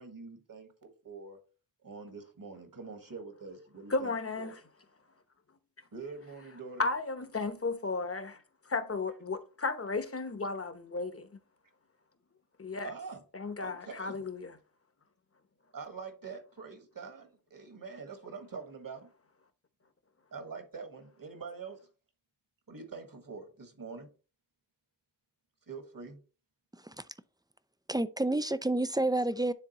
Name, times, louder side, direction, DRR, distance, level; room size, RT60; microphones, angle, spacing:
voice 1, 0.0-1.4 1.8-4.5 5.9-6.9 12.8-13.2 13.6-14.2 15.7-19.1 20.3-21.8 22.7-24.1 25.7-26.2, right 4 dB, 50° right, 1.6 m, -45 dB
voice 2, 3.9-4.6 6.8-11.3 12.6-12.9 13.3-14.6, left 3 dB, 30° left, 0.9 m, -34 dB
voice 3, 26.7-27.1 27.9-29.5, right 2 dB, 10° right, 0.3 m, -29 dB
9.7 x 3.6 x 3.0 m
cardioid pair, 55°, 44 cm